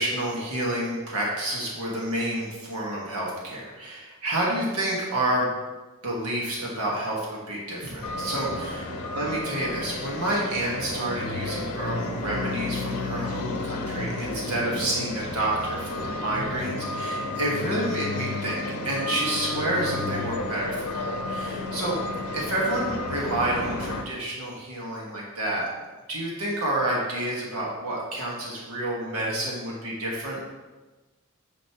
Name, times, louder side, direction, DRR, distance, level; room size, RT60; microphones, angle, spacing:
voice 1, 0.0-5.5 6.0-8.8 9.1-22.0 22.3-25.6 26.1-30.4, right 1 dB, 75° right, -4 dB, 1.6 m, -29 dB
sound 1, 8.0-24.0, left 2 dB, 85° left, 0.8 m, -32 dB
9.1 x 5.2 x 3.0 m, 1.2 s
head